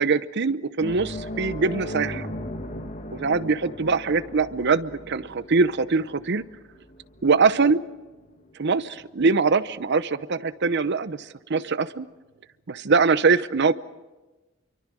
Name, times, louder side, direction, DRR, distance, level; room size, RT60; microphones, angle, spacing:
voice 1, 0.0-2.3 3.2-6.4 7.2-7.8 8.6-12.1 12.7-13.7, right 4 dB, 55° right, 14 dB, 0.8 m, -22 dB
sound 1, 0.8-9.7 10.1-10.3 12.3-12.4, left 1 dB, 40° left, 1.8 m, -38 dB
27.0 x 24.0 x 6.2 m, 1.2 s
head